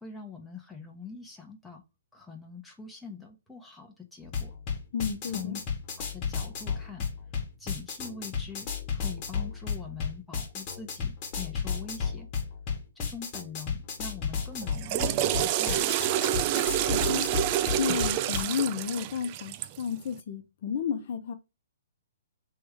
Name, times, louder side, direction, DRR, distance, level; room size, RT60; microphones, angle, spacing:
voice 1, 0.0-1.8 2.1-4.5 5.2-5.6 6.0-7.1 7.6-12.3 13.0-15.9, left 5 dB, 5° left, 1.0 m, -43 dB
sound 1, 4.2-18.4, left 6 dB, 30° left, 1.3 m, -34 dB
voice 2, 4.9-5.6 16.9-17.3 17.8-21.3, left 7 dB, 50° left, 0.7 m, -32 dB
Water / Toilet flush, 14.6-19.9, right 12 dB, 35° right, 0.4 m, -28 dB
3.4 x 3.2 x 4.7 m
hypercardioid pair, 140°, 0 cm